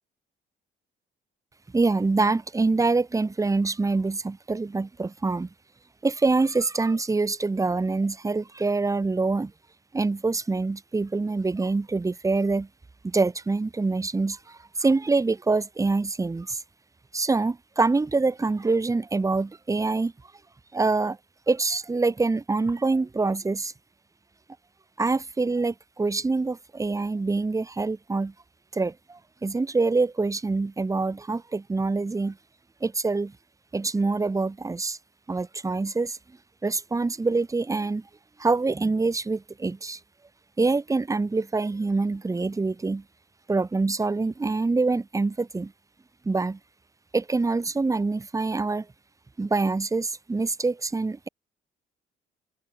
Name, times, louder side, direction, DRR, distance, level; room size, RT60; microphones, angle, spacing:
voice 1, 1.7-5.5 6.0-9.5 9.9-12.7 13.0-16.6 17.1-20.1 20.7-21.2 21.5-23.7 25.0-28.3 28.7-32.4 32.8-33.3 33.7-35.0 35.3-36.2 36.6-38.1 38.4-40.0 40.6-43.0 43.5-45.7 46.2-46.6 47.1-48.9 49.4-51.3, right 3 dB, 15° right, 0.8 m, -25 dB
open air
cardioid pair, 90°, 20 cm